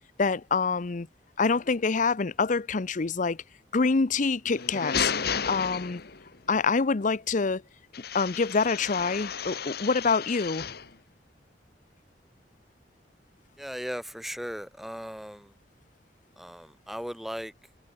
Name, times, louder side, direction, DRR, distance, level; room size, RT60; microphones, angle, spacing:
voice 1, 0.2-1.1 1.4-3.4 3.7-5.1 5.5-6.0 6.5-7.6 8.1-10.6, left 4 dB, 45° left, 0.7 m, -26 dB
sound 1, 4.4-6.4 7.9-10.9, left 6 dB, 65° left, 1.4 m, -33 dB
voice 2, 13.6-15.5 16.4-17.5, equal, ahead, 1.0 m, -37 dB
head